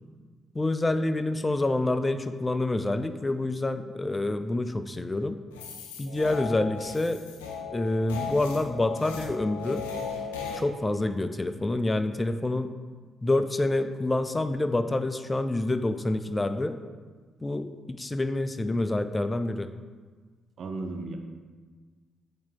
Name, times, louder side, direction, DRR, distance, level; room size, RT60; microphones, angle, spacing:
voice 1, 0.5-5.4 6.0-7.2 7.7-9.9 10.5-12.7 13.2-16.8 17.4-19.7, left 2 dB, 25° left, 10 dB, 0.4 m, -27 dB
sound 1, 5.5-10.6, left 5 dB, 85° left, 0.5 m, -37 dB
voice 2, 20.6-21.2, right 3 dB, 60° right, 5 dB, 0.6 m, -34 dB
8.5 x 2.9 x 3.8 m, 1.5 s
hypercardioid pair, 40°, 0 cm